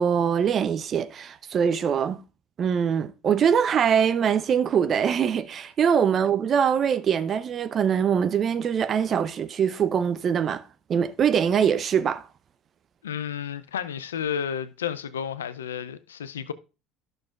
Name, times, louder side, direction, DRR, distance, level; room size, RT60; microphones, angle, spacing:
voice 1, 0.0-2.2 2.6-10.6 10.9-12.2, right 7 dB, 45° right, 0.6 m, -23 dB
voice 2, 13.0-16.5, left 8 dB, 90° left, 0.5 m, -31 dB
11.5 x 6.4 x 2.4 m
hypercardioid pair, 70°, 0 cm